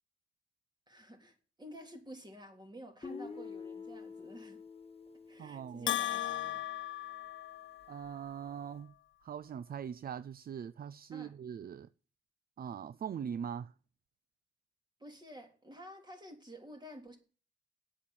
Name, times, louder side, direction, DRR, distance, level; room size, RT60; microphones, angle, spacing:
voice 1, 0.9-4.6 5.3-6.6 11.1-11.3 15.0-17.2, equal, 20° right, 3.4 m, -51 dB
Guitar, 3.0-7.0, left 5 dB, 30° left, 1.4 m, -48 dB
voice 2, 5.4-5.9 7.9-8.9 9.2-11.9 12.6-13.7, right 8 dB, 50° right, 0.4 m, -41 dB
Bell, 5.9-8.0, left 13 dB, 85° left, 0.5 m, -36 dB
8.4 x 7.7 x 8.5 m
cardioid pair, 80°, 19 cm